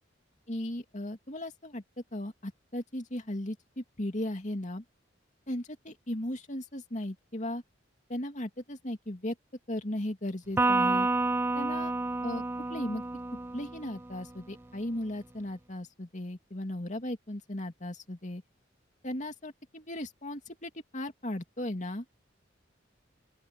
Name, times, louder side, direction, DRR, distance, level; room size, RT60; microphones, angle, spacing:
voice 1, 0.5-1.8 2.1-4.8 5.5-7.6 8.1-9.3 9.7-11.1 11.5-11.9 12.2-12.4 12.7-13.0 13.5-18.4 19.0-22.0, left 1 dB, 40° left, 2.6 m, -36 dB
Electric guitar, 10.6-14.1, right 2 dB, 10° right, 0.4 m, -29 dB
open air
head